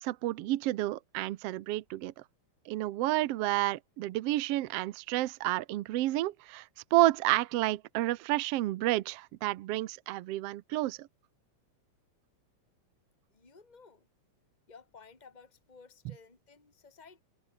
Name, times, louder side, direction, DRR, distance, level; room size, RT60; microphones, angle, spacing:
voice 1, 0.0-2.1 2.7-11.1, right 16 dB, 70° right, 1.6 m, -30 dB
voice 2, 13.3-14.1 14.7-17.2, left 5 dB, 15° left, 3.0 m, -55 dB
open air
omnidirectional pair, 3.3 m